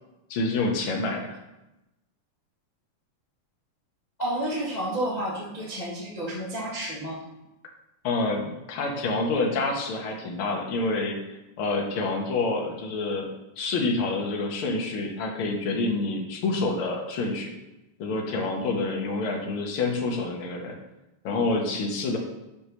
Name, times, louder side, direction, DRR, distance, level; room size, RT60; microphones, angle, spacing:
voice 1, 0.3-1.3 8.0-11.2 11.6-13.3 13.6-17.5 18.0-20.7 21.2-22.2, left 3 dB, 55° left, 0 dB, 1.7 m, -27 dB
voice 2, 4.2-7.2, right 1 dB, 30° left, -6 dB, 0.7 m, -30 dB
6.3 x 5.7 x 6.3 m, 0.95 s
omnidirectional pair, 3.7 m